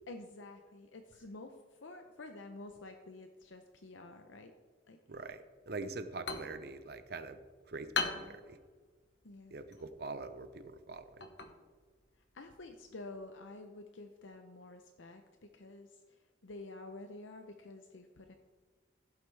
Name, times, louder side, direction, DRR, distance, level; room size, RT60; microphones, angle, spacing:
voice 1, 0.1-4.5 4.9-5.0 8.0-8.4 9.2-9.6 12.3-18.3, left 2 dB, 85° left, 5 dB, 0.8 m, -50 dB
voice 2, 5.1-7.4 7.7-8.6 9.5-11.3, right 3 dB, 55° right, 10 dB, 0.7 m, -44 dB
sound 1, 5.9-13.4, left 4 dB, 65° left, 1.1 m, -43 dB
15.5 x 8.0 x 3.4 m, 1.5 s
head